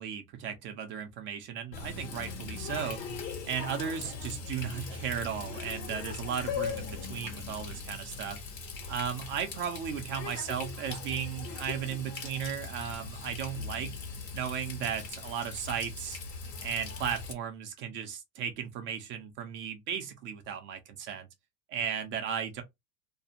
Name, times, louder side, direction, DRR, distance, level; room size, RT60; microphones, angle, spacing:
voice 1, 0.0-3.0 3.5-8.4 8.9-14.0 14.3-16.2 16.6-21.3 21.7-22.6, right 8 dB, 30° right, 0.3 m, -35 dB
Water tap faucet, 1.7-17.3, left 5 dB, 90° left, 1.0 m, -40 dB
2.5 x 2.3 x 2.7 m
hypercardioid pair, 105°, 48 cm